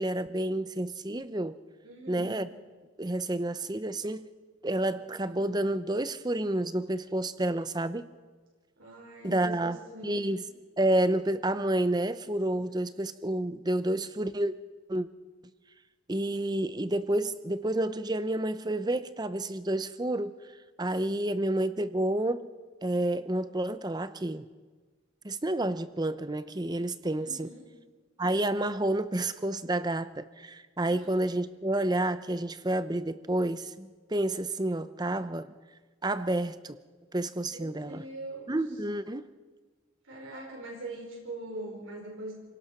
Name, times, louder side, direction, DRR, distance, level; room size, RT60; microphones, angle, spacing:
voice 1, 0.0-1.6 2.1-2.5 3.0-4.3 4.6-8.1 9.2-10.4 10.8-14.5 14.9-15.1 16.1-20.4 20.8-22.5 22.8-24.5 25.2-27.5 28.2-35.5 36.0-36.8 37.1-38.0 38.5-39.3, right 1 dB, 20° right, 13 dB, 0.6 m, -29 dB
voice 2, 1.8-2.4 8.8-10.4 12.7-12.8 27.2-27.7 30.9-31.1 37.5-38.6 40.0-42.3, right 2 dB, 85° right, -2 dB, 5.3 m, -42 dB
29.0 x 18.0 x 5.8 m, 1.4 s
head